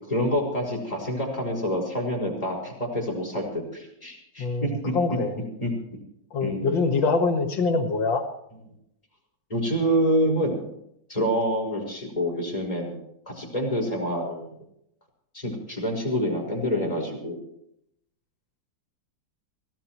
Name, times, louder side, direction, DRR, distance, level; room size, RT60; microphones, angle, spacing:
voice 1, 0.1-5.2 5.6-6.0 6.4-6.7 9.5-10.6 11.1-13.0 13.3-14.5 15.3-17.4, equal, 20° left, -1 dB, 5.5 m, -27 dB
voice 2, 4.4-5.3 6.3-8.2, left 4 dB, 85° left, 5 dB, 2.4 m, -24 dB
23.5 x 16.0 x 3.1 m, 0.77 s
omnidirectional pair, 2.0 m